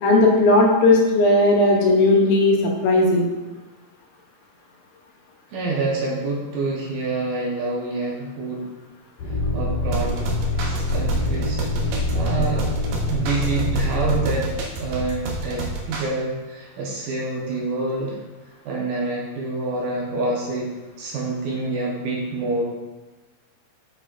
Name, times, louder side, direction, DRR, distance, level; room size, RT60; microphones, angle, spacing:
voice 1, 0.0-3.3, left 2 dB, 75° left, -1 dB, 2.4 m, -16 dB
voice 2, 5.5-8.7 9.5-10.2 10.9-12.7 13.1-14.5 14.8-18.2 18.7-20.7 21.0-22.6, right 3 dB, 70° right, -3 dB, 2.4 m, -27 dB
sound 1, 9.2-14.3, left 2 dB, 60° left, 2.1 m, -25 dB
sound 2, 9.8-16.1, right 2 dB, 90° right, 1.6 m, -30 dB
6.7 x 6.2 x 2.5 m, 1.2 s
omnidirectional pair, 4.4 m